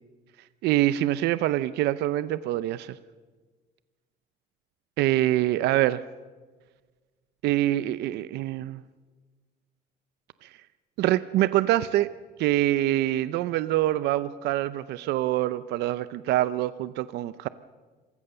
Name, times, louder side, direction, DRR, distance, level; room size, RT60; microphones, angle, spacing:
voice 1, 0.6-3.0 5.0-6.0 7.4-8.8 10.4-10.5 11.0-12.1 12.4-17.5, right 14 dB, 80° right, 15 dB, 0.6 m, -25 dB
26.5 x 15.5 x 6.7 m, 1.4 s
cardioid pair, 110°, 17 cm